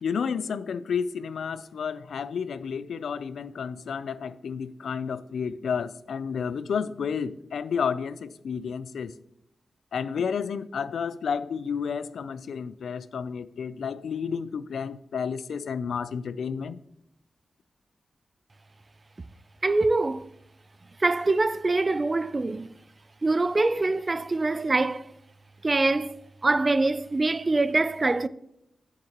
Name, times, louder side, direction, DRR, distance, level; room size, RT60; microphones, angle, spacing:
voice 1, 0.0-9.2 9.9-16.8, left 6 dB, 85° left, 0.3 m, -31 dB
voice 2, 19.6-20.3 21.0-22.7 23.2-25.1 25.6-26.2 26.4-28.3, right 2 dB, 30° right, 0.3 m, -24 dB
10.0 x 6.5 x 2.9 m
wide cardioid pair, 120°, 0 cm